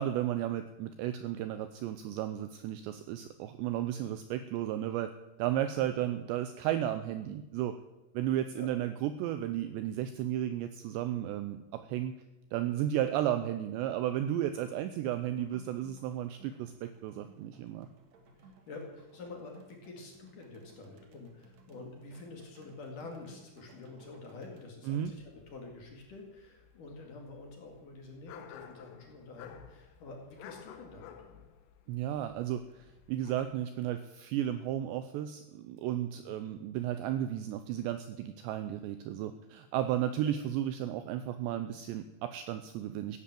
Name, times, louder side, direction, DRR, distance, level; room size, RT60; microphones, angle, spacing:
voice 1, 0.0-5.1 5.4-7.8 8.1-12.2 12.5-17.9 24.9-25.1 31.9-43.2, right 11 dB, 85° right, 10 dB, 2.5 m, -34 dB
voice 2, 5.8-6.2 8.2-8.3 8.6-8.7 13.0-13.1 14.7-14.8 18.4-31.4 36.1-36.3 40.2-40.4, left 3 dB, 50° left, 1 dB, 3.2 m, -48 dB
sound 1, 14.2-24.7, right 3 dB, 65° right, 1.8 m, -59 dB
sound 2, 24.9-33.5, left 8 dB, 90° left, 3.9 m, -54 dB
16.0 x 10.5 x 7.6 m, 1.0 s
omnidirectional pair, 5.7 m